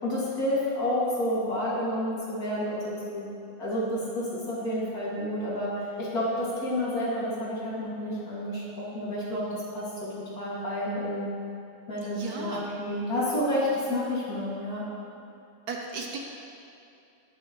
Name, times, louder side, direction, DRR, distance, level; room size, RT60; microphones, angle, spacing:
voice 1, 0.0-2.8 3.1-3.3 3.6-5.7 6.0-9.9 10.4-11.3 11.9-14.9, left 1 dB, 65° left, -7 dB, 2.8 m, -30 dB
voice 2, 12.0-12.7 15.7-16.2, right 4 dB, 75° right, 1 dB, 1.4 m, -36 dB
19.0 x 6.9 x 3.1 m, 2.8 s
omnidirectional pair, 1.7 m